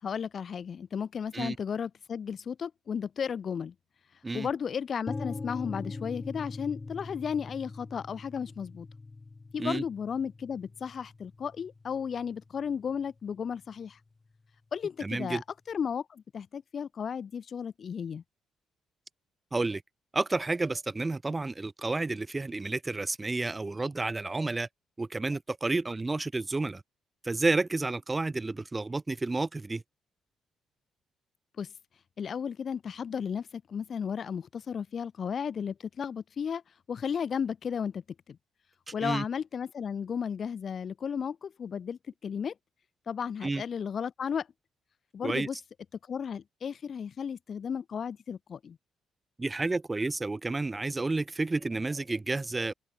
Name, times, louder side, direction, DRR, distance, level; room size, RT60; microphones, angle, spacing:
voice 1, 0.0-3.7 4.3-8.9 9.5-14.0 14.7-15.4 15.7-18.2 31.6-31.7 32.2-36.6 36.9-38.0 38.9-42.5 43.1-44.5 45.1-45.6 46.1-48.8, left 7 dB, 50° left, 4.2 m, -34 dB
sound 1, 5.1-13.0, left 3 dB, 25° left, 3.6 m, -42 dB
voice 2, 15.0-15.4 19.5-19.8 20.1-24.7 25.0-26.8 27.2-29.8 39.0-39.3 43.4-43.6 45.2-45.5 49.4-52.7, right 3 dB, 20° right, 3.5 m, -30 dB
cardioid pair, 90°, 0 cm